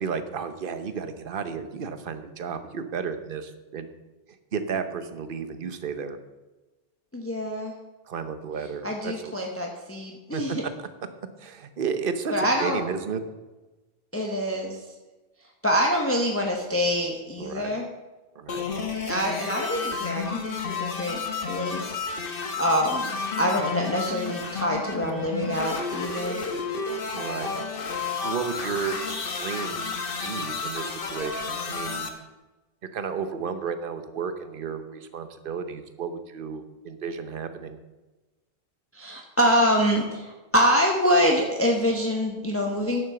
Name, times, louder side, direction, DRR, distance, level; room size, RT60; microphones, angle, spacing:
voice 1, 0.0-3.9 4.5-6.2 8.1-9.3 10.3-10.7 11.4-13.2 17.4-17.7 18.3-18.7 27.1-27.5 28.2-29.0 29.3-29.9 30.2-32.1 32.9-37.8, right 6 dB, 55° right, 10 dB, 1.0 m, -32 dB
voice 2, 7.1-7.7 8.8-10.6 12.3-12.8 14.1-14.8 15.6-17.8 19.1-21.2 21.5-22.0 22.3-23.1 23.4-26.4 38.9-43.1, equal, 15° left, 1 dB, 1.0 m, -25 dB
sound 1, 18.5-32.1, left 5 dB, 55° left, 1.3 m, -31 dB
10.0 x 7.2 x 6.9 m, 1.1 s
omnidirectional pair, 1.1 m